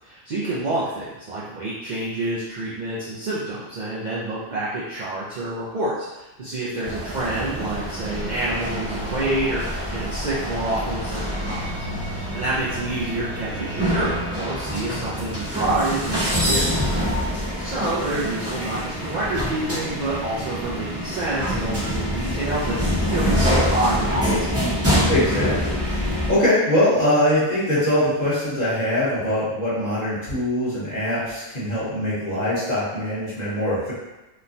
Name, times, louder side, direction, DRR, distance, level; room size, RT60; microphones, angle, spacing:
voice 1, 0.0-11.9 12.1-17.0 17.6-22.8 23.1-24.6, right 2 dB, 55° right, -8 dB, 0.5 m, -28 dB
sound 1, 6.8-26.3, equal, 15° right, 0.7 m, -26 dB
voice 2, 25.0-25.7 26.3-33.9, left 1 dB, 40° left, -9 dB, 1.1 m, -22 dB
3.1 x 2.1 x 2.5 m, 1.0 s
omnidirectional pair, 1.2 m